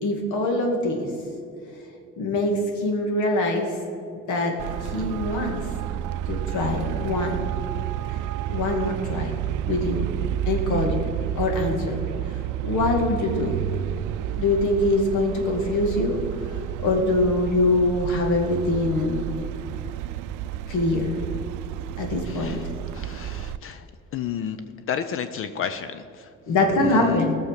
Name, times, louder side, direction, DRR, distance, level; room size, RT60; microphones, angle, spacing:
voice 1, 0.0-1.1 2.2-3.7 4.3-4.5 4.8-5.6 6.3-7.4 8.5-9.4 9.6-10.0 10.5-11.1 11.4-12.0 12.6-13.6 14.4-16.2 16.8-19.2 20.7-21.2 22.0-22.6 26.5-27.3, left 2 dB, 80° left, 2 dB, 2.4 m, -23 dB
Traffic noise roadway noise, 4.6-23.6, right 12 dB, 90° right, 0.5 m, -30 dB
voice 2, 22.3-22.7 22.9-23.9 24.1-26.3 26.8-27.3, left 9 dB, 45° left, 11 dB, 0.5 m, -31 dB
18.0 x 6.5 x 6.6 m, 2.5 s
cardioid pair, 165°, 29 cm